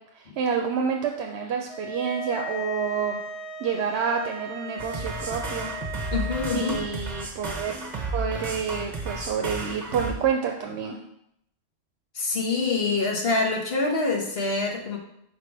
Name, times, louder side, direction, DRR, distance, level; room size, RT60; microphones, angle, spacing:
voice 1, 0.2-3.2 3.6-5.7 6.5-7.7 8.1-11.0, right 6 dB, 80° right, 2 dB, 0.8 m, -28 dB
sound 1, 1.7-6.8, equal, 5° left, 1.3 m, -37 dB
sound 2, 4.8-10.1, right 3 dB, 40° right, 1.1 m, -33 dB
voice 2, 6.1-6.8 12.1-15.0, left 3 dB, 65° left, 0 dB, 1.3 m, -25 dB
5.3 x 4.2 x 4.7 m, 0.75 s
omnidirectional pair, 1.1 m